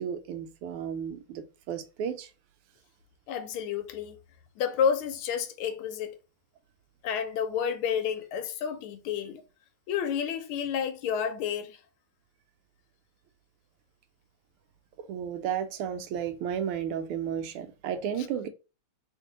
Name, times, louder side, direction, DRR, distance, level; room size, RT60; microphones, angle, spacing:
voice 1, 0.0-2.3 15.0-18.5, right 8 dB, 85° right, 1.5 m, -33 dB
voice 2, 3.3-4.2 4.6-6.1 7.0-9.4 9.9-11.8, left 7 dB, 80° left, 1.4 m, -30 dB
3.5 x 2.6 x 3.7 m
omnidirectional pair, 2.4 m